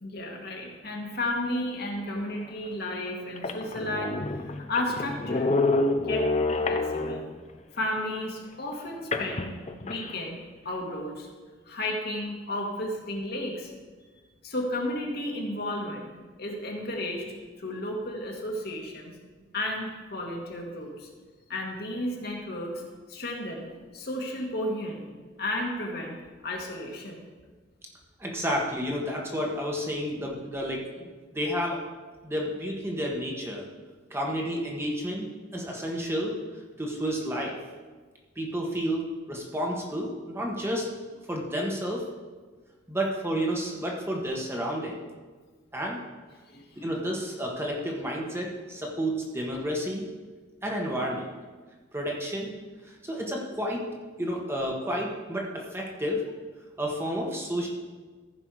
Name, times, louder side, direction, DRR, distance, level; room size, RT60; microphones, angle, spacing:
voice 1, 0.0-5.5 6.0-6.3 6.7-7.2 7.7-9.5 9.8-11.3 11.6-13.7 14.4-16.1 16.4-17.3 17.6-19.1 19.5-21.1 21.5-25.1 25.4-27.2 46.5-46.8, left 1 dB, 55° left, 0 dB, 1.7 m, -33 dB
sound 1, 2.4-2.5 3.1-3.2 3.4-7.4 9.1-10.2, left 3 dB, 35° left, 0.6 m, -28 dB
voice 2, 28.2-31.8 32.2-33.6 34.1-35.3 35.5-36.4 36.8-37.6 38.4-40.9 41.3-42.1 42.9-45.0 45.7-46.0 46.8-50.0 50.6-51.2 51.9-52.5 53.0-53.9 54.2-56.2 56.8-57.7, equal, 15° right, -2 dB, 1.3 m, -30 dB
14.5 x 5.4 x 4.8 m, 1.4 s
head